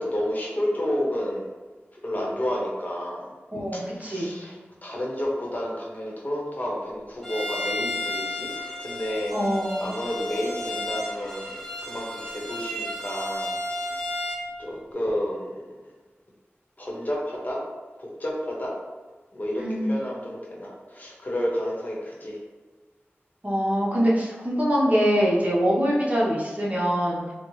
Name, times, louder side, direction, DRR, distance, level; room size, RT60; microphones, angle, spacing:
voice 1, 0.0-1.5 2.0-3.2 3.9-9.3 9.8-13.6 14.6-15.5 16.8-17.6 18.0-18.7 19.3-19.6 19.9-22.4, left 1 dB, 40° left, -3 dB, 0.8 m, -30 dB
voice 2, 3.5-4.4 9.3-9.9 19.6-19.9 23.4-27.3, equal, 35° right, -5 dB, 0.8 m, -24 dB
Bowed string instrument, 7.2-14.5, left 1 dB, 5° left, 0.8 m, -32 dB
4.0 x 2.0 x 3.0 m, 1.4 s
wide cardioid pair, 70°, 4 cm